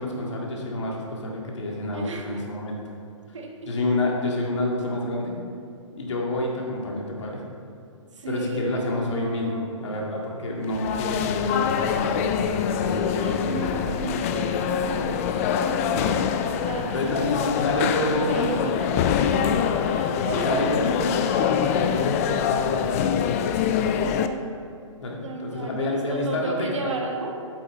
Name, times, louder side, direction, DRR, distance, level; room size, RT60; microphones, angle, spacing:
voice 1, 0.0-2.8 3.7-5.3 6.0-7.5 8.3-13.5 16.9-18.4 20.4-23.2 25.0-26.9, left 1 dB, 65° left, -2 dB, 2.0 m, -29 dB
voice 2, 1.9-2.4 3.3-3.7 8.1-9.6 12.9-16.1 16.6-19.6 19.9-20.7 23.7-24.5 25.2-27.5, right 3 dB, 65° right, 2 dB, 1.4 m, -34 dB
sound 1, 10.6-24.3, left 7 dB, 25° left, 0.4 m, -24 dB
8.5 x 7.4 x 4.1 m, 2.4 s
figure-of-eight pair, 135°, 17 cm